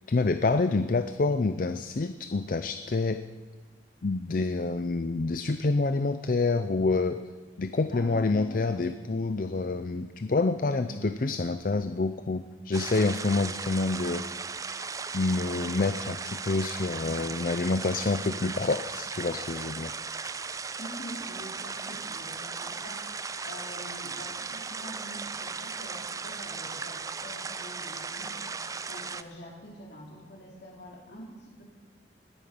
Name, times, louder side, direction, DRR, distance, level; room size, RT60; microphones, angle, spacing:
voice 1, 0.1-3.2 4.0-7.2 7.6-14.2 15.1-19.9, left 3 dB, 45° left, 10 dB, 0.5 m, -27 dB
voice 2, 7.9-8.8 10.7-11.1 20.8-23.1 23.4-28.5 28.8-31.6, equal, 65° left, -1 dB, 3.9 m, -45 dB
sound 1, 12.7-29.2, right 5 dB, 20° right, 0.4 m, -37 dB
19.0 x 9.2 x 6.9 m, 1.4 s
head